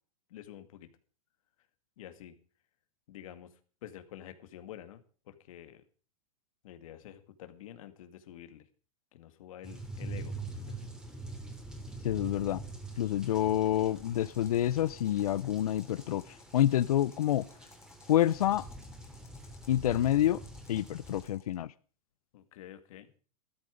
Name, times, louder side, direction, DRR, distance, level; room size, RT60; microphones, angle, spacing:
voice 1, 0.3-0.9 2.0-2.4 3.1-3.5 3.8-5.8 6.6-8.7 9.1-10.9 22.3-23.1, left 11 dB, 65° left, 9 dB, 2.1 m, -49 dB
sound 1, 9.6-21.2, right 2 dB, 5° right, 2.6 m, -45 dB
voice 2, 12.0-12.6 13.0-17.5 18.1-18.7 19.7-20.4 20.7-21.7, left 12 dB, 85° left, 19 dB, 0.6 m, -28 dB
sound 2, 14.0-21.6, left 5 dB, 15° left, 2.7 m, -60 dB
14.5 x 13.0 x 5.1 m, 0.39 s
hypercardioid pair, 135°, 18 cm